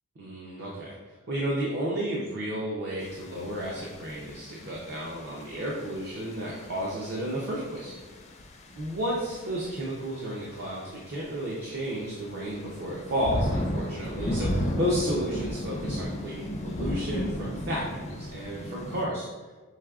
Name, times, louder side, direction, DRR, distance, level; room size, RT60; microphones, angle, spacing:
voice 1, 0.2-0.9 1.3-8.2 8.7-19.3, equal, 45° right, -4 dB, 0.6 m, -32 dB
sound 1, 3.0-19.1, left 1 dB, 30° left, 0.4 m, -35 dB
4.9 x 3.2 x 2.3 m, 1.3 s
head